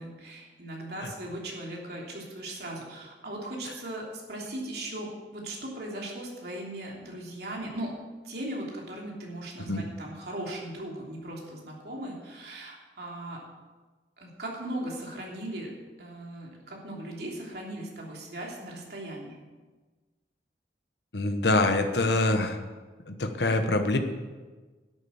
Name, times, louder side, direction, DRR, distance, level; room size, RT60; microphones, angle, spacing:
voice 1, 0.0-7.9 8.2-13.4 14.2-15.7 16.0-19.4, right 1 dB, 60° right, -2 dB, 3.1 m, -38 dB
voice 2, 21.1-22.6 23.1-24.0, left 2 dB, 75° left, 7 dB, 1.2 m, -25 dB
10.5 x 8.9 x 7.1 m, 1.3 s
head